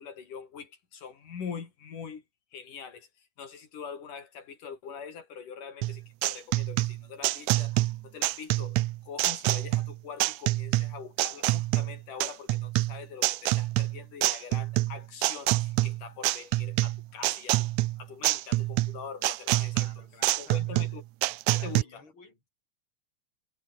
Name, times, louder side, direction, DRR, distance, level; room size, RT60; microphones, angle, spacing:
voice 1, 0.0-2.2 2.5-17.7 18.0-20.0 20.4-21.0 21.5-22.0, left 6 dB, 90° left, 5.2 m, -43 dB
sound 1, 5.8-21.8, right 18 dB, 80° right, 2.0 m, -27 dB
voice 2, 19.7-21.0 21.5-22.5, left 3 dB, 40° left, 7.6 m, -53 dB
omnidirectional pair, 3.6 m